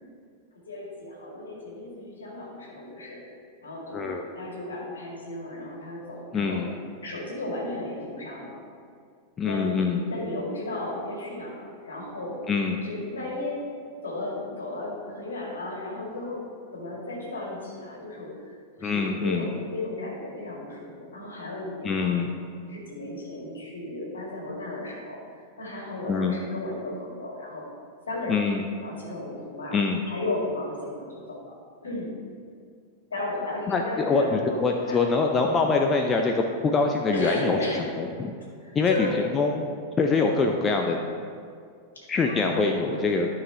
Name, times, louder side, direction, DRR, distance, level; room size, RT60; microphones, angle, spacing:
voice 1, 0.7-3.2 3.6-6.6 7.0-8.6 9.4-12.5 12.8-13.6 14.0-16.5 16.7-18.4 18.8-22.2 22.6-25.2 25.6-27.7 28.1-28.5 28.8-29.8 30.1-31.4 31.8-32.1 33.1-35.0 37.1-37.9 38.6-39.2 42.0-43.1, left 2 dB, 70° left, -3 dB, 2.1 m, -34 dB
voice 2, 3.9-4.2 6.3-6.7 9.4-10.0 12.5-12.8 18.8-19.5 21.8-22.3 26.1-26.4 28.3-28.6 29.7-30.0 33.7-36.3 36.6-37.6 38.0-38.3 38.7-39.7 40.0-41.0 42.1-43.3, left 4 dB, 20° left, 2 dB, 0.5 m, -24 dB
12.5 x 5.6 x 2.9 m, 2.2 s
figure-of-eight pair, 90°, 0 cm